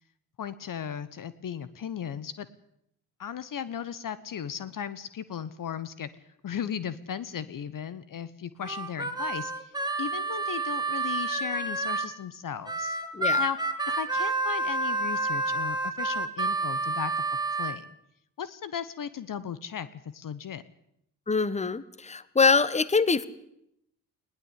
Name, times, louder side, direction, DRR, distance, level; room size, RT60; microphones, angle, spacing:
voice 1, 0.4-2.5 3.2-6.1 6.4-13.0 13.4-13.6 14.0-17.9 18.4-20.6, left 8 dB, 45° left, 16 dB, 1.1 m, -36 dB
Harmonica, 8.6-12.1 12.7-17.8, right 2 dB, 10° right, 2.8 m, -29 dB
voice 2, 21.3-23.3, left 4 dB, 15° left, 17 dB, 1.3 m, -24 dB
20.5 x 17.0 x 8.4 m, 0.76 s
hypercardioid pair, 45°, 46 cm